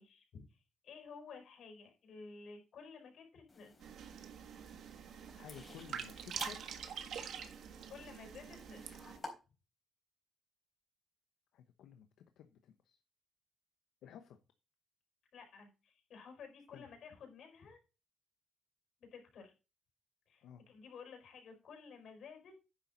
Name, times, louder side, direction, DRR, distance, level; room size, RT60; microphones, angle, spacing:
voice 1, 0.0-3.7 7.9-8.8 15.3-17.8 19.0-19.5 20.3-22.5, left 5 dB, 60° left, 4 dB, 4.7 m, -53 dB
sound 1, 3.5-9.3, left 3 dB, 25° left, 3.9 m, -54 dB
sound 2, 3.8-9.2, right 8 dB, 65° right, 1.6 m, -46 dB
voice 2, 5.4-6.6 11.5-12.1 12.4-13.0 14.0-14.4 16.7-16.9 20.4-20.6, left 9 dB, 80° left, 8 dB, 0.9 m, -54 dB
10.0 x 7.3 x 4.0 m, 0.30 s
cardioid pair, 140°, 0 cm